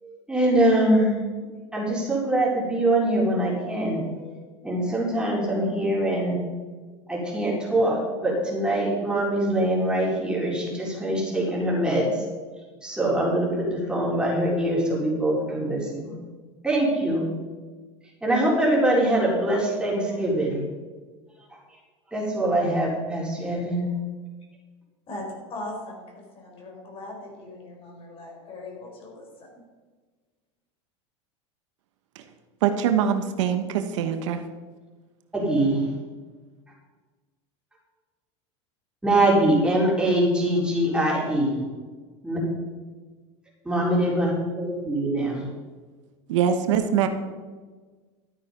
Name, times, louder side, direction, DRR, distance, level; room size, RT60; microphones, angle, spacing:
voice 1, 0.0-1.2 1.7-4.3 4.6-6.4 7.1-12.1 12.8-16.1 16.6-17.3 18.2-20.6 22.1-24.0 35.3-35.8 39.0-41.6 42.2-42.4 43.6-45.5, right 1 dB, 5° right, -4 dB, 4.1 m, -23 dB
voice 2, 25.1-29.5, left 2 dB, 35° left, 0 dB, 4.5 m, -39 dB
voice 3, 32.6-34.4 46.3-47.1, right 8 dB, 80° right, 8 dB, 1.2 m, -23 dB
13.0 x 8.8 x 5.2 m, 1.4 s
supercardioid pair, 125°, 15 cm